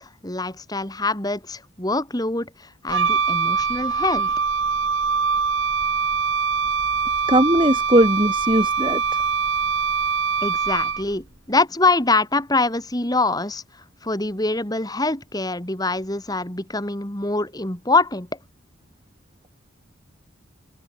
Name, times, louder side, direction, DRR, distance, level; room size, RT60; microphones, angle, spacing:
voice 1, 0.0-4.3 10.4-13.6 14.0-18.3, left 3 dB, 20° left, 2.4 m, -24 dB
Wind instrument woodwind instrument, 2.9-11.2, right 5 dB, 70° right, 2.0 m, -23 dB
voice 2, 7.3-9.2, right 1 dB, 25° right, 2.9 m, -19 dB
head